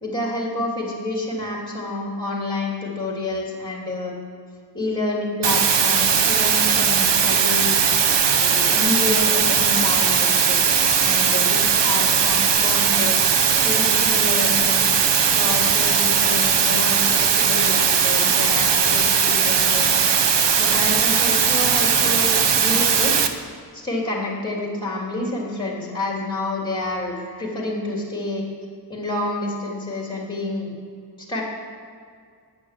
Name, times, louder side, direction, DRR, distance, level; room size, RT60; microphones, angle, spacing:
voice 1, 0.0-4.1 4.7-7.8 8.4-10.6 11.0-13.2 13.6-14.9 15.3-20.0 20.6-23.2 23.7-28.4 28.9-30.7 31.3-31.4, left 2 dB, 10° left, -2 dB, 3.2 m, -28 dB
sound 1, 5.4-23.3, right 6 dB, 70° right, 1.0 m, -18 dB
11.5 x 9.6 x 7.6 m, 2.1 s
wide cardioid pair, 135°, 43 cm